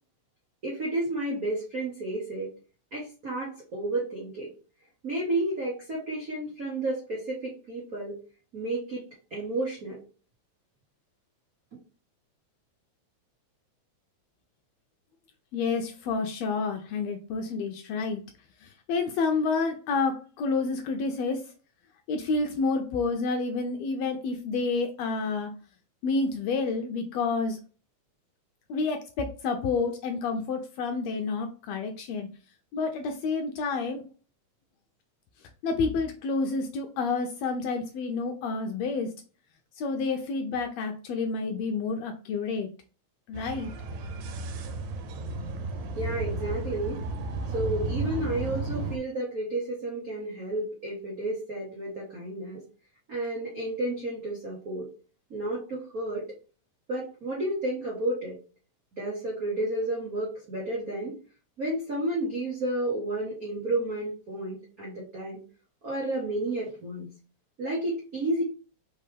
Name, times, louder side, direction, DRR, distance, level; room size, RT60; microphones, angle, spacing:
voice 1, 0.6-2.5 2.9-4.5 5.0-8.2 8.5-9.0 9.3-10.0 45.9-47.0 47.5-52.6 53.1-54.9 55.3-56.2 56.9-58.4 58.9-61.1 61.6-65.4 65.8-67.1 67.6-68.4, right 1 dB, 65° right, -5 dB, 0.8 m, -31 dB
voice 2, 15.5-18.2 18.6-21.4 22.1-25.5 26.0-27.6 28.7-32.3 32.7-34.0 35.6-39.1 39.8-42.7 43.3-43.7, left 4 dB, 80° left, 5 dB, 1.6 m, -29 dB
sound 1, 43.3-49.0, right 3 dB, 85° right, 2.1 m, -33 dB
4.4 x 3.3 x 3.3 m, 0.37 s
omnidirectional pair, 3.3 m